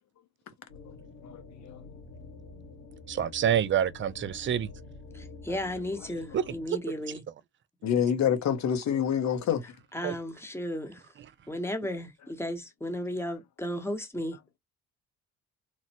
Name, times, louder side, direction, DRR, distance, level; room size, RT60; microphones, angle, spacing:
sound 1, 0.7-6.7, left 3 dB, 80° left, 2.0 m, -48 dB
voice 1, 1.2-1.9 5.5-5.6 6.0-6.1 7.8-9.8, left 8 dB, 65° left, 0.9 m, -28 dB
voice 2, 3.1-4.7 6.3-6.8 10.0-10.2, right 9 dB, 40° right, 0.4 m, -27 dB
voice 3, 5.1-7.2 9.9-11.0 11.5-14.4, left 1 dB, 10° left, 0.9 m, -34 dB
3.1 x 2.1 x 2.7 m
cardioid pair, 90°, 30 cm